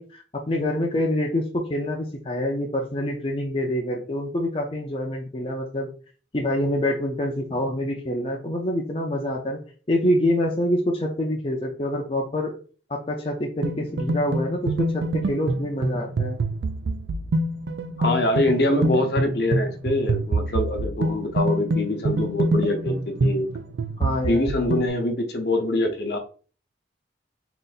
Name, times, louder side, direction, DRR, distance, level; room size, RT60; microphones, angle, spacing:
voice 1, 0.0-5.9 6.3-9.6 9.9-12.5 12.9-16.4 24.0-24.5, left 1 dB, 30° left, 0.5 m, -26 dB
sound 1, 13.6-24.9, right 2 dB, 80° right, 0.4 m, -26 dB
voice 2, 18.0-23.5 24.3-26.2, left 1 dB, 60° left, 0.8 m, -24 dB
3.9 x 2.6 x 4.0 m
head